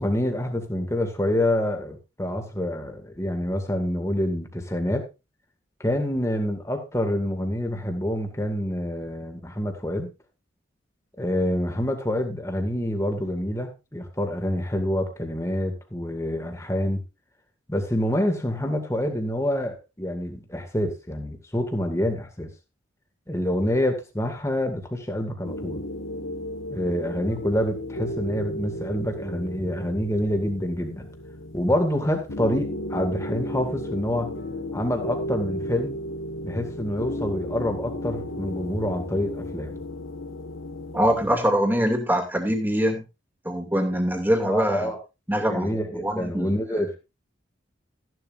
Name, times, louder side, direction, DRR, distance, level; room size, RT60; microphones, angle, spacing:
voice 1, 0.0-5.1 5.8-10.1 11.2-17.0 17.7-22.5 23.3-25.8 26.7-31.1 31.5-34.3 34.7-36.0 36.4-39.8 44.4-45.0 45.5-47.0, left 1 dB, 15° left, 4 dB, 2.2 m, -27 dB
sound 1, 25.4-41.4, left 1 dB, 90° left, 1.7 m, -34 dB
voice 2, 40.9-43.0 43.4-44.9 45.3-46.6, equal, 10° right, 2 dB, 2.4 m, -23 dB
14.5 x 11.0 x 2.6 m, 0.27 s
head